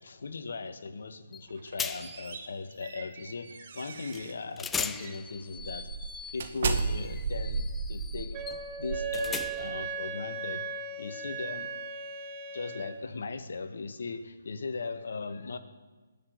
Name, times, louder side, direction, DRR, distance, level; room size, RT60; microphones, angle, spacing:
voice 1, 0.0-5.9 6.3-8.4 8.8-10.7 11.0-11.7 12.5-15.6, left 4 dB, 70° left, 8 dB, 1.6 m, -38 dB
sound 1, 1.3-1.5 1.8-2.3 4.1-4.2 4.6-9.9, left 6 dB, 10° left, 0.4 m, -39 dB
sound 2, 1.5-4.4 4.9-5.1 5.6-9.8, right 4 dB, 50° right, 1.9 m, -35 dB
Wind instrument woodwind instrument, 8.3-13.0, right 5 dB, 25° right, 1.4 m, -37 dB
19.5 x 7.1 x 9.5 m, 1.3 s
hypercardioid pair, 150°, 0 cm